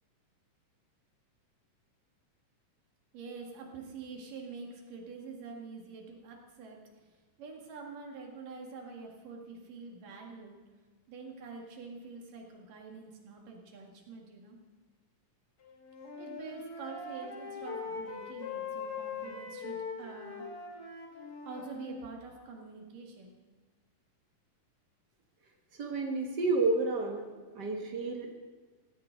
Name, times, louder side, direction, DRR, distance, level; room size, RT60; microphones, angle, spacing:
voice 1, 3.1-10.6 11.1-14.6 16.2-20.5 21.5-23.4, right 4 dB, 75° right, 1 dB, 3.6 m, -46 dB
Wind instrument woodwind instrument, 15.6-22.1, left 4 dB, 35° left, 2.0 m, -41 dB
voice 2, 25.7-27.2 27.5-28.4, right 3 dB, 55° right, 2 dB, 1.1 m, -30 dB
16.0 x 15.0 x 4.0 m, 1.4 s
omnidirectional pair, 3.9 m